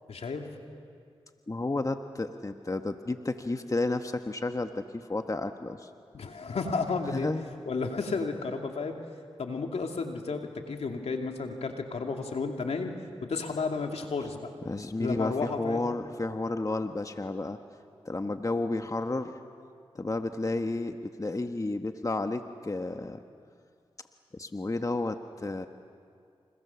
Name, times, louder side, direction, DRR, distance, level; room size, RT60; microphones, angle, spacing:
voice 1, 0.1-0.5 6.1-7.3 7.7-9.0 9.4-12.9 13.2-14.5 15.0-15.8, left 4 dB, 75° left, 3 dB, 2.6 m, -32 dB
voice 2, 1.5-5.9 7.1-7.5 14.6-17.6 18.0-19.3 19.9-23.2 24.3-25.7, left 2 dB, 30° left, 7 dB, 1.4 m, -32 dB
29.0 x 27.0 x 7.1 m, 2.3 s
cardioid pair, 40°, 11 cm